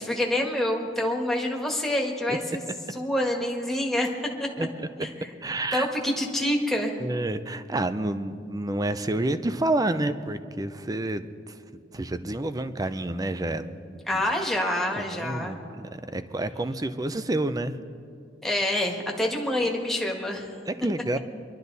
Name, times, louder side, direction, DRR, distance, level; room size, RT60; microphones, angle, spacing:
voice 1, 0.0-2.6 2.9-4.5 5.7-7.0 14.1-15.6 18.4-20.5, left 1 dB, ahead, -1 dB, 1.6 m, -27 dB
voice 2, 4.6-4.9 5.4-5.9 7.0-11.6 11.9-14.0 14.9-17.8 20.7-21.2, right 1 dB, 20° right, 11 dB, 0.6 m, -29 dB
24.0 x 12.0 x 4.1 m, 2.4 s
head